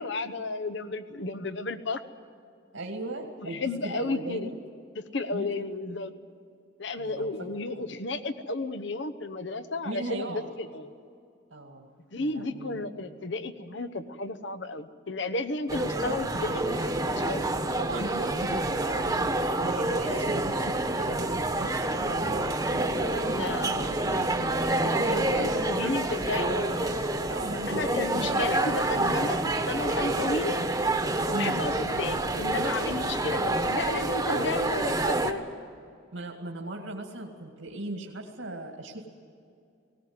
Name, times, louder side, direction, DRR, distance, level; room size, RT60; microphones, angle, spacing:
voice 1, 0.0-2.0 3.4-4.5 5.1-6.1 6.8-10.9 12.1-16.6 17.0-17.4 20.0-20.3 23.3-23.7 25.1-26.6 27.7-30.6 31.3-35.4, left 3 dB, 65° left, 10 dB, 1.0 m, -33 dB
voice 2, 2.7-4.6 5.3-5.5 7.0-7.3 9.8-10.5 11.5-11.9 12.2-12.8 17.8-19.1 19.5-24.4 24.7-26.0 26.4-26.8 27.3-28.6 31.3-31.6 33.0-33.1 34.3-34.5 36.1-39.1, right 2 dB, 85° right, 1 dB, 2.2 m, -37 dB
sound 1, 15.7-35.3, right 2 dB, 15° right, 1.2 m, -28 dB
19.5 x 18.0 x 9.6 m, 2.4 s
head